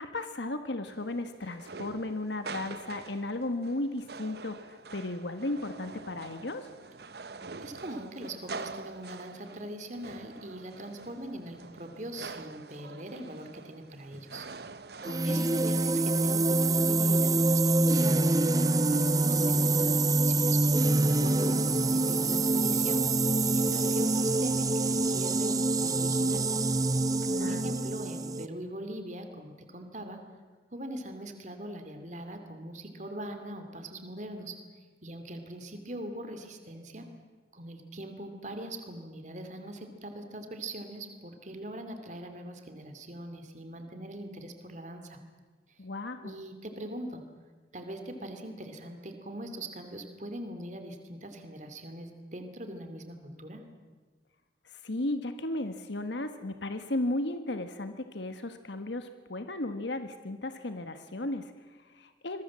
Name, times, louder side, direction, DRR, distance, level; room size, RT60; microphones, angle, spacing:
voice 1, 0.0-6.7 15.0-15.6 27.2-27.7 45.8-46.3 54.6-62.4, left 2 dB, 75° left, 8 dB, 1.4 m, -35 dB
sound 1, 0.9-15.4, right 4 dB, 60° right, 1.0 m, -45 dB
voice 2, 7.6-14.4 15.2-18.4 18.9-23.1 23.5-26.5 27.4-30.2 30.7-34.5 35.0-37.1 37.5-45.2 46.2-47.2 47.7-53.6, right 1 dB, 40° right, 7 dB, 2.7 m, -41 dB
sound 2, 15.0-28.5, right 2 dB, 20° right, 0.6 m, -25 dB
26.5 x 22.0 x 7.5 m, 1.4 s
head